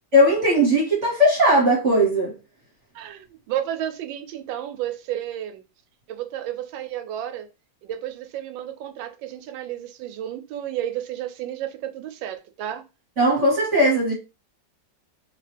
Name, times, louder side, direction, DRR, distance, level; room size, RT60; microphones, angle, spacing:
voice 1, 0.1-2.4 13.2-14.1, equal, 45° right, 1.2 m, -18 dB
voice 2, 2.9-5.6 6.1-7.5 7.8-12.9, right 11 dB, 85° right, 1.3 m, -32 dB
3.0 x 2.9 x 3.3 m
omnidirectional pair, 2.0 m